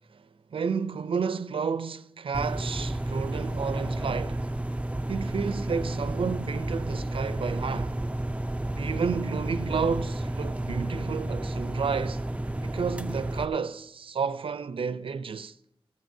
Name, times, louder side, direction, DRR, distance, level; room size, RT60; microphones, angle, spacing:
voice 1, 0.5-4.5 5.1-8.0 8.8-12.3 12.6-15.5, right 5 dB, 80° right, 0.5 m, -31 dB
sound 1, 2.3-13.5, right 1 dB, 15° right, 0.5 m, -31 dB
16.0 x 14.0 x 2.7 m
wide cardioid pair, 65°, 9 cm